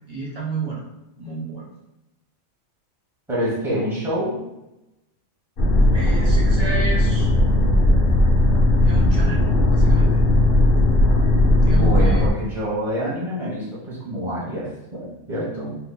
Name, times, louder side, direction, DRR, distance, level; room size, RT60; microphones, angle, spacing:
voice 1, 0.1-0.8 1.2-1.7 5.9-8.0 8.8-10.2 11.6-12.2, right 3 dB, 35° right, -4 dB, 0.9 m, -31 dB
voice 2, 3.3-4.4 11.7-15.8, equal, ahead, -7 dB, 0.9 m, -27 dB
sound 1, 5.6-12.3, left 1 dB, 60° left, 0.6 m, -17 dB
4.0 x 2.7 x 2.2 m, 0.93 s
omnidirectional pair, 1.4 m